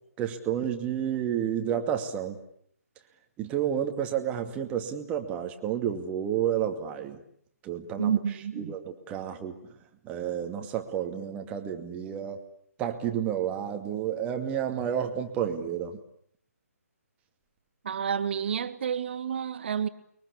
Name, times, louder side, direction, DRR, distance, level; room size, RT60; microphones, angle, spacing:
voice 1, 0.2-2.4 3.4-7.2 7.6-8.2 8.6-9.6 10.0-12.4 12.8-15.9, right 9 dB, 15° right, 2.4 m, -30 dB
voice 2, 8.0-8.8 17.8-19.9, right 7 dB, 45° right, 1.8 m, -29 dB
29.0 x 23.0 x 8.5 m
figure-of-eight pair, 145°, 9 cm